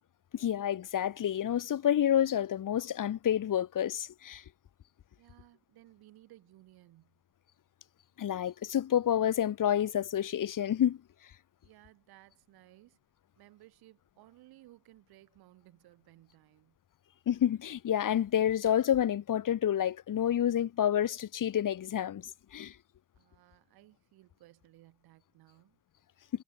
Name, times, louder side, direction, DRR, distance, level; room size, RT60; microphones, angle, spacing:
voice 1, 0.3-4.4 8.2-11.0 17.3-22.7, left 10 dB, 60° left, 1.2 m, -29 dB
voice 2, 5.2-7.2 11.6-13.0 13.4-16.8 23.1-25.8, right 17 dB, 90° right, 7.7 m, -59 dB
supercardioid pair, 50°, 36 cm